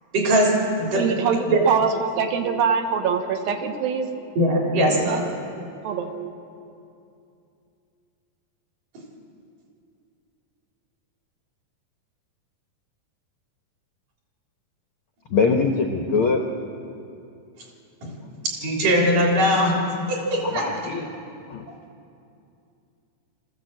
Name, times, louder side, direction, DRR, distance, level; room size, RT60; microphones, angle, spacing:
voice 1, 0.1-0.5 0.8-1.0 1.5-1.6 4.4-5.3 18.0-18.1 18.6-20.6, equal, 65° right, -2 dB, 5.1 m, -21 dB
voice 2, 1.0-4.1 5.1-5.2 5.8-6.3, right 6 dB, 85° right, 5 dB, 3.0 m, -24 dB
voice 3, 15.3-16.4 20.4-21.1 21.5-21.6, left 4 dB, 85° left, 3 dB, 1.1 m, -22 dB
25.0 x 14.5 x 7.8 m, 2.6 s
omnidirectional pair, 4.1 m